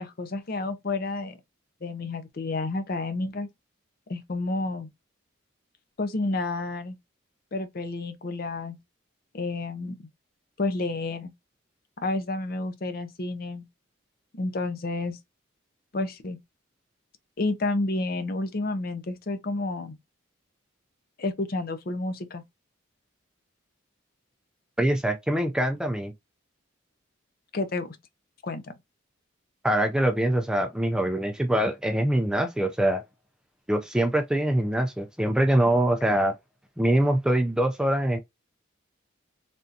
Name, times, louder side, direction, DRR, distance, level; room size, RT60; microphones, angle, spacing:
voice 1, 0.0-1.4 1.8-3.5 4.1-4.9 6.0-7.0 7.5-8.8 9.3-10.1 10.6-11.3 12.0-13.7 14.3-15.2 15.9-16.4 17.4-20.0 21.2-22.4 27.5-27.9 28.4-28.7, left 2 dB, 45° left, 0.6 m, -30 dB
voice 2, 24.8-26.1 29.6-33.0 33.7-36.3 36.8-38.2, right 1 dB, 5° right, 0.3 m, -24 dB
3.4 x 2.7 x 2.4 m
head